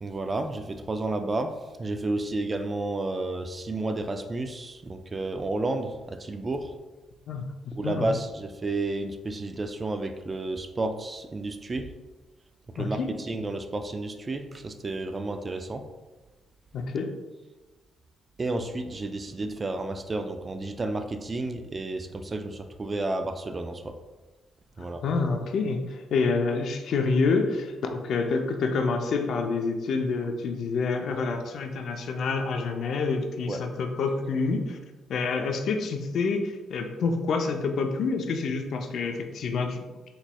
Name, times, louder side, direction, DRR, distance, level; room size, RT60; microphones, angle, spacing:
voice 1, 0.0-6.7 7.7-11.9 12.7-15.8 18.4-24.0 24.8-25.0 33.5-33.6, right 2 dB, 30° right, 8 dB, 0.3 m, -31 dB
voice 2, 7.3-8.1 12.8-13.1 16.7-17.1 25.0-34.8 35.1-39.8, left 4 dB, 65° left, 4 dB, 0.4 m, -27 dB
4.3 x 3.0 x 2.2 m, 1.2 s
cardioid pair, 90°, 0 cm